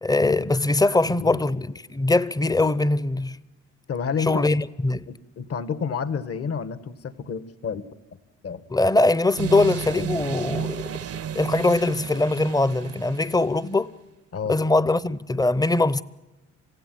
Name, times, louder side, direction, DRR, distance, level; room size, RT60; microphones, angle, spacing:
voice 1, 0.0-3.4 4.3-5.1 8.7-10.9 11.3-13.9 14.5-16.0, left 2 dB, 10° left, 0.7 m, -22 dB
voice 2, 3.9-4.4 5.1-7.9 8.4-8.6 14.3-14.6, left 6 dB, 50° left, 1.4 m, -30 dB
sound 1, 9.4-13.7, right 8 dB, 50° right, 0.7 m, -32 dB
27.5 x 16.0 x 9.4 m
cardioid pair, 90°, 30 cm